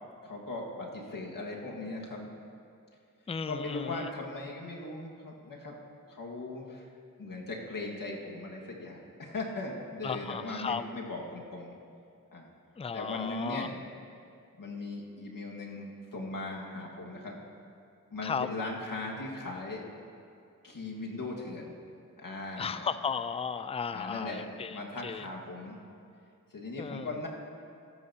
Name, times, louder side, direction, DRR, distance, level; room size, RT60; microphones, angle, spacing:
voice 1, 0.2-2.3 3.5-5.8 6.1-6.9 7.2-11.8 12.3-12.5 12.9-13.7 14.6-17.4 18.1-19.8 20.6-21.8 22.2-22.9 23.9-25.8 26.5-27.3, left 2 dB, 70° left, -2 dB, 1.9 m, -38 dB
voice 2, 3.3-4.1 10.0-10.8 12.8-13.7 18.2-18.5 22.6-25.3 26.8-27.1, left 6 dB, 20° left, 13 dB, 0.4 m, -35 dB
19.0 x 9.8 x 2.9 m, 2.5 s
cardioid pair, 50°, 34 cm